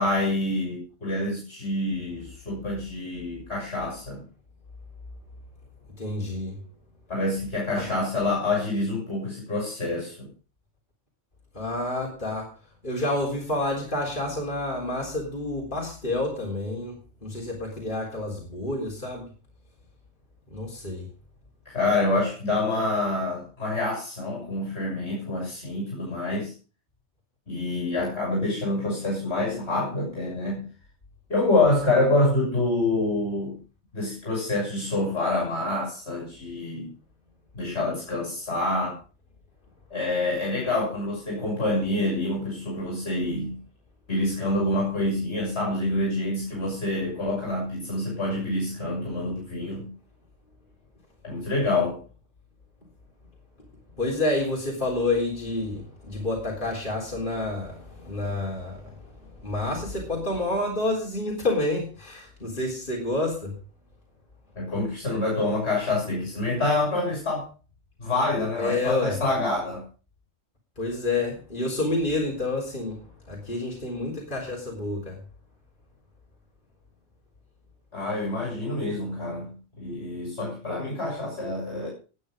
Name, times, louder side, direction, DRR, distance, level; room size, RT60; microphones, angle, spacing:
voice 1, 0.0-4.2 7.1-10.3 21.7-26.5 27.5-30.6 31.3-33.6 33.9-36.9 37.5-39.0 39.9-43.6 44.1-49.9 51.2-52.0 64.6-67.5 68.0-69.8 77.9-81.9, left 2 dB, 60° left, -2 dB, 7.0 m, -27 dB
voice 2, 6.0-6.6 7.7-7.9 11.5-12.6 12.8-19.3 20.5-21.1 54.0-63.5 68.6-69.2 70.8-75.2, left 2 dB, 40° left, -2 dB, 4.0 m, -29 dB
19.0 x 9.7 x 5.2 m, 0.36 s
omnidirectional pair, 1.2 m